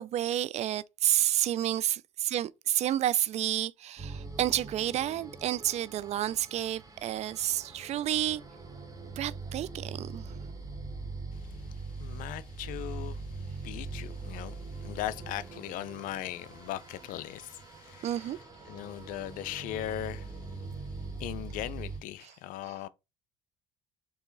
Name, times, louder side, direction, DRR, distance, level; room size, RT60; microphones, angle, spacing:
voice 1, 0.0-8.4 9.2-10.4 18.0-18.4 22.2-22.3 22.6-22.7, right 12 dB, 50° right, 0.4 m, -30 dB
sound 1, 4.0-22.0, right 3 dB, 25° right, 1.7 m, -42 dB
voice 2, 12.0-13.2 13.6-18.3 18.7-20.3 21.2-22.9, left 13 dB, 70° left, 0.5 m, -38 dB
4.6 x 2.9 x 3.9 m
supercardioid pair, 85°, 14 cm